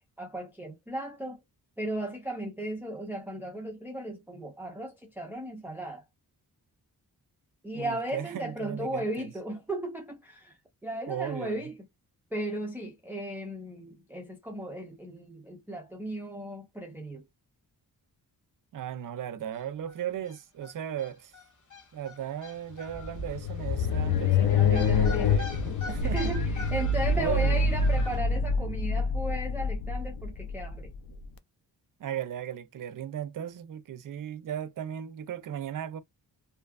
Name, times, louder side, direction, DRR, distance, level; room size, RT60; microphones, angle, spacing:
voice 1, 0.2-1.4 1.8-6.0 7.6-11.8 12.3-17.2 24.5-25.4 26.0-30.9, right 1 dB, 5° right, 0.5 m, -36 dB
voice 2, 7.7-9.3 11.1-11.7 18.7-21.3 21.9-26.3 27.1-27.7 32.0-36.0, right 10 dB, 60° right, 0.5 m, -36 dB
sound 1, 19.6-19.7 19.9-20.0 20.2-28.2, left 2 dB, 55° left, 1.1 m, -42 dB
sound 2, 22.9-31.2, left 4 dB, 70° left, 0.5 m, -26 dB
2.7 x 2.3 x 2.2 m
wide cardioid pair, 125°, 37 cm